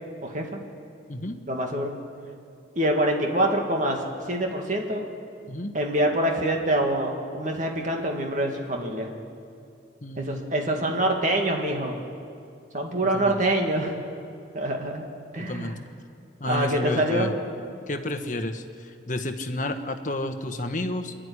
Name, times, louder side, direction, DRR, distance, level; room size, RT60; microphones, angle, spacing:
voice 1, 0.2-0.6 1.5-1.9 2.8-4.0 4.3-5.0 5.7-9.1 10.2-12.0 12.7-13.9 14.5-15.0 15.3-15.8 16.4-17.3, right 1 dB, 40° right, 2 dB, 2.3 m, -25 dB
voice 2, 1.1-1.4 5.5-5.7 10.0-10.7 13.1-13.4 15.4-15.8 16.4-17.3 17.9-21.1, left 1 dB, 40° left, 7 dB, 1.2 m, -31 dB
26.0 x 11.5 x 9.8 m, 2.4 s
head